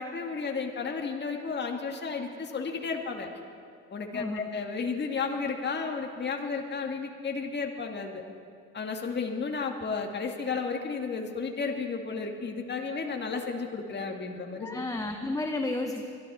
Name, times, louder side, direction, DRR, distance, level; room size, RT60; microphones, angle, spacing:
voice 1, 0.0-3.3 3.9-8.2 8.7-14.8, left 4 dB, 35° left, 2 dB, 1.9 m, -33 dB
voice 2, 14.6-16.1, left 2 dB, 10° left, 4 dB, 1.0 m, -32 dB
23.5 x 12.5 x 4.2 m, 2.3 s
supercardioid pair, 70°, 33 cm